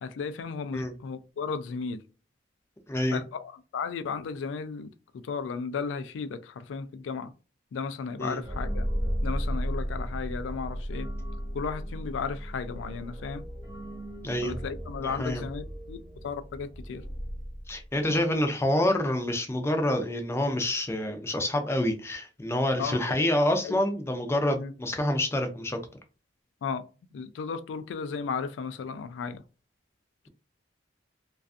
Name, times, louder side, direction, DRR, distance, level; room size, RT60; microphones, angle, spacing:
voice 1, 0.0-2.0 3.1-7.3 7.7-8.9 9.2-11.1 11.5-13.4 14.4-17.0 22.8-23.3 23.6-23.8 24.6-24.7 26.6-26.8 27.1-29.4, left 5 dB, 85° left, 0.3 m, -35 dB
voice 2, 2.9-3.2 8.2-8.4 14.2-14.5 15.0-15.4 17.7-25.8, left 1 dB, 15° left, 0.4 m, -27 dB
sound 1, 8.4-18.1, equal, 20° right, 0.8 m, -35 dB
2.4 x 2.3 x 2.4 m
head